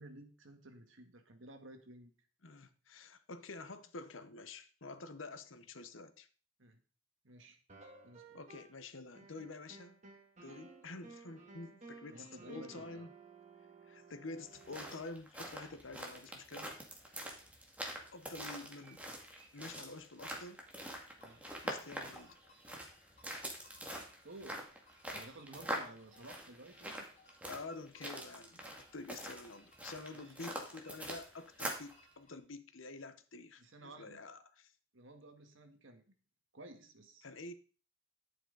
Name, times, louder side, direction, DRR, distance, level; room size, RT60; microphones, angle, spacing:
voice 1, 0.0-2.1 6.6-6.8 7.2-7.6 8.0-8.4 12.1-13.1 17.4-17.5 21.2-21.4 24.2-24.7 25.1-27.1 30.1-30.3 33.6-34.2 34.9-36.1 36.5-37.3, right 1 dB, 75° right, 1.7 m, -54 dB
voice 2, 2.4-6.3 8.3-10.0 10.4-13.1 13.8-16.7 18.1-19.0 19.5-20.6 21.6-22.4 27.5-34.7 37.2-37.5, left 3 dB, 80° left, 1.0 m, -48 dB
sound 1, 7.7-8.9 9.1-15.0, right 3 dB, 40° right, 2.7 m, -56 dB
sound 2, 14.5-31.9, right 1 dB, 5° right, 2.2 m, -45 dB
sound 3, 21.1-32.4, left 1 dB, 35° left, 6.6 m, -67 dB
11.0 x 9.0 x 4.0 m
head